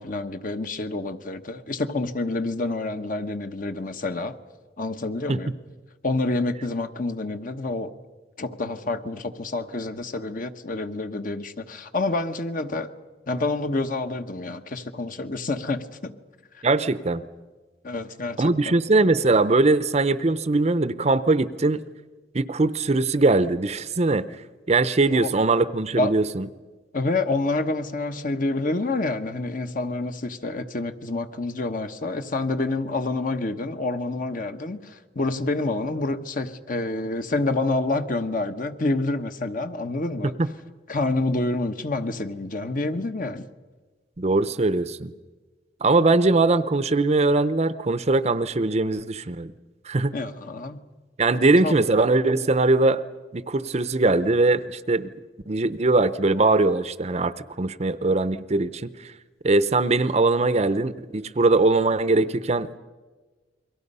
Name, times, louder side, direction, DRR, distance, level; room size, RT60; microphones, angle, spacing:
voice 1, 0.0-4.4 4.8-5.5 6.0-7.9 8.4-12.9 13.3-16.1 17.8-18.7 25.1-25.3 26.0-26.2 26.9-40.3 40.9-43.5 50.1-50.8 51.6-51.8, left 2 dB, 45° left, 1.1 m, -28 dB
voice 2, 16.6-17.2 18.4-21.8 22.3-24.2 24.7-26.5 40.4-40.5 44.2-45.1 45.8-49.5 49.9-50.1 51.2-53.0 53.3-55.1 55.5-59.1 59.4-62.8, right 3 dB, 35° right, 0.7 m, -21 dB
29.5 x 23.0 x 5.5 m
head